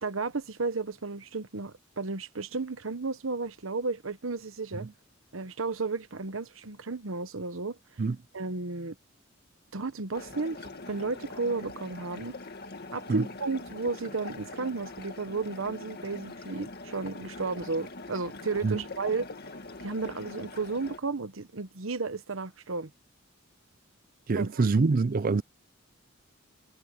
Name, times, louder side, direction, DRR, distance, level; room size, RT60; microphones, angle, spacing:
voice 1, 0.0-4.9 5.3-7.8 8.3-8.9 9.7-12.4 12.9-19.3 19.8-22.9 24.3-24.6, right 3 dB, 80° right, 1.1 m, -33 dB
sound 1, 10.1-21.0, left 2 dB, 55° left, 1.9 m, -43 dB
voice 2, 24.3-25.4, right 4 dB, 45° right, 0.5 m, -25 dB
head